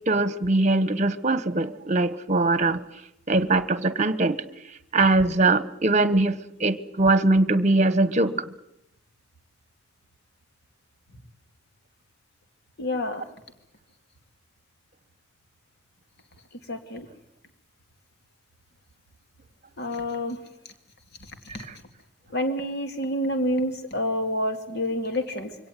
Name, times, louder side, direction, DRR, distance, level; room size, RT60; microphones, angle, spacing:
voice 1, 0.1-2.8 3.3-4.4 4.9-8.4, right 2 dB, 35° right, 1.2 m, -21 dB
voice 2, 12.8-13.3 16.7-17.1 19.8-20.4 21.2-21.7 22.3-25.6, left 1 dB, 55° left, 2.5 m, -28 dB
24.0 x 17.5 x 9.3 m
head